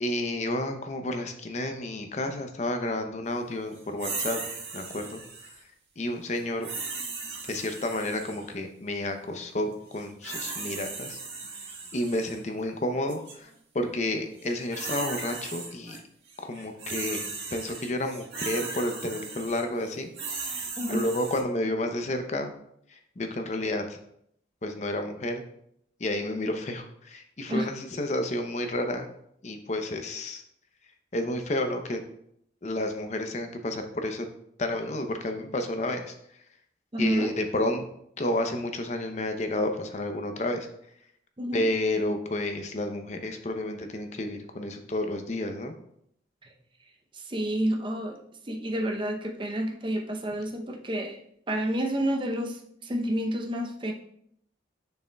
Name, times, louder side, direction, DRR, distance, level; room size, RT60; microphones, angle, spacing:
voice 1, 0.0-4.4 4.7-5.2 6.0-6.7 7.4-11.2 11.9-16.0 16.4-20.1 20.4-22.5 22.9-24.0 24.6-25.4 26.0-29.1 29.4-30.4 31.1-32.0 32.6-34.3 34.6-36.1 37.0-37.9 38.2-40.7 41.5-45.7, left 1 dB, 40° left, 6 dB, 0.6 m, -31 dB
sound 1, 4.0-5.6 6.6-8.5 9.9-12.4 13.1-13.3 14.4-16.0 16.3-21.4, right 4 dB, 75° right, 1.6 m, -37 dB
voice 2, 20.8-21.1 27.5-27.7 36.9-37.4 41.4-41.7 47.1-48.2 48.4-51.2 51.5-53.9, right 1 dB, 25° right, 2 dB, 0.6 m, -29 dB
6.9 x 6.4 x 2.3 m, 0.72 s
head